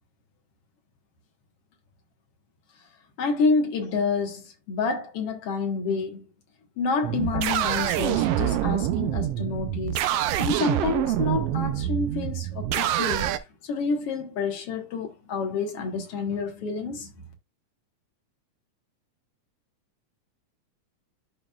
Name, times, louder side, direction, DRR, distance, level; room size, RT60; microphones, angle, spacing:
voice 1, 3.2-6.3 6.8-10.0 10.4-17.1, left 4 dB, 60° left, 2.0 m, -28 dB
sound 1, 7.0-13.4, right 12 dB, 80° right, 1.4 m, -26 dB
12.5 x 4.3 x 2.3 m
omnidirectional pair, 3.4 m